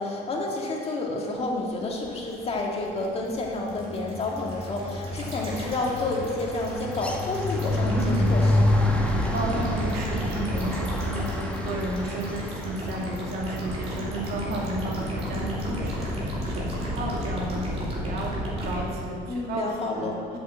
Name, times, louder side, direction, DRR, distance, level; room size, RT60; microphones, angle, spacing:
voice 1, 0.0-8.9 19.3-20.4, left 2 dB, 35° left, -1 dB, 2.1 m, -30 dB
sound 1, 2.2-18.8, left 1 dB, 35° right, 3.2 m, -32 dB
sound 2, 2.4-2.7 3.0-16.1, left 1 dB, 5° left, 1.2 m, -30 dB
voice 2, 7.9-8.3 9.1-20.4, right 2 dB, 70° right, -2 dB, 2.5 m, -33 dB
8.2 x 7.7 x 7.8 m, 2.4 s
cardioid pair, 110°, 17 cm